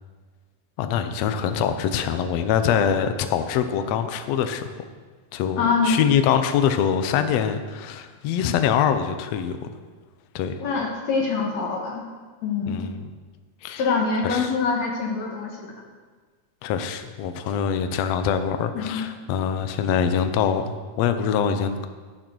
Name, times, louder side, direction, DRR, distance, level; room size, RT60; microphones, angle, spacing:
voice 1, 0.8-4.7 5.3-9.6 10.3-10.5 12.7-13.1 13.6-13.8 14.2-14.5 16.6-21.9, left 8 dB, 85° left, 8 dB, 1.4 m, -24 dB
voice 2, 5.6-6.0 10.6-12.0 12.4-12.8 13.8-15.7 18.7-19.1, left 4 dB, 60° left, 1 dB, 2.3 m, -24 dB
11.5 x 7.8 x 6.2 m, 1.4 s
omnidirectional pair, 3.9 m